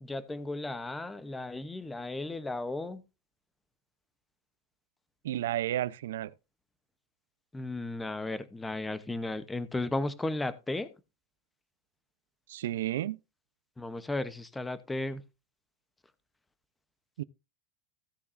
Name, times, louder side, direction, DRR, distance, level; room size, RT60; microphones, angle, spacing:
voice 1, 0.0-3.0 7.5-10.9 13.8-15.2, left 2 dB, 5° left, 0.7 m, -35 dB
voice 2, 5.2-6.3 12.5-13.2 17.2-17.3, right 13 dB, 85° right, 0.5 m, -32 dB
16.0 x 7.0 x 2.5 m
supercardioid pair, 165°, 0 cm